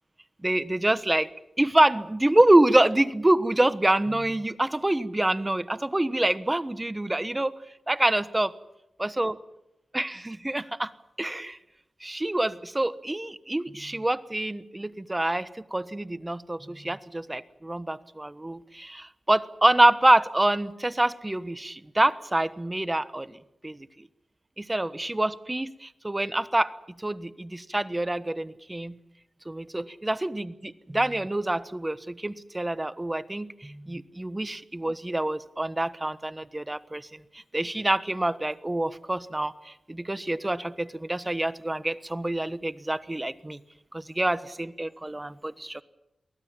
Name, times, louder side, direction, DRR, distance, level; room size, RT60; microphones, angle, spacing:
voice 1, 0.4-1.3 1.6-7.5 7.9-8.5 9.0-9.3 9.9-10.9 11.2-11.6 12.0-23.4 23.6-23.9 24.6-26.7 27.0-29.0 29.5-37.1 37.3-43.6 43.9-45.8, right 1 dB, 20° right, 13 dB, 1.2 m, -26 dB
23.5 x 17.0 x 8.9 m, 0.88 s
cardioid pair, 60°, 0 cm